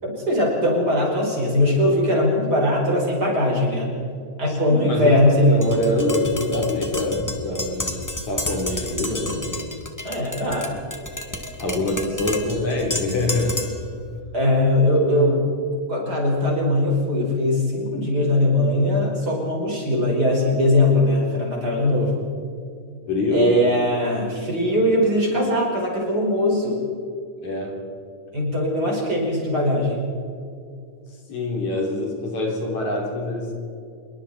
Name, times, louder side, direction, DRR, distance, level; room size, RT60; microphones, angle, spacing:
voice 1, 0.0-3.9 4.4-5.6 10.0-10.8 14.3-15.5 15.9-22.2 23.3-26.8 28.3-30.1, left 1 dB, 30° right, -2 dB, 5.5 m, -20 dB
voice 2, 4.5-9.5 11.6-13.7 23.1-23.5 27.4-27.9 31.3-33.5, left 2 dB, 65° left, -1 dB, 4.9 m, -25 dB
Tap, 5.6-13.9, left 2 dB, 10° left, 1.2 m, -30 dB
26.5 x 23.0 x 4.3 m, 2.5 s
omnidirectional pair, 3.6 m